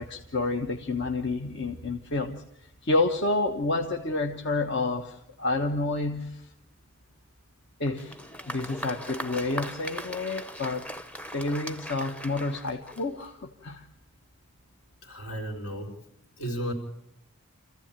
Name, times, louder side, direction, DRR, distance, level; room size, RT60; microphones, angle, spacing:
voice 1, 0.0-2.4 2.8-6.5 7.8-8.2 8.5-10.9 11.3-13.9, left 2 dB, 50° left, 4 dB, 1.2 m, -29 dB
Applause, 7.9-13.4, equal, 5° left, 0.8 m, -39 dB
voice 2, 15.0-16.0 16.4-16.7, equal, 75° left, 2 dB, 4.2 m, -34 dB
26.5 x 15.0 x 8.9 m, 0.82 s
head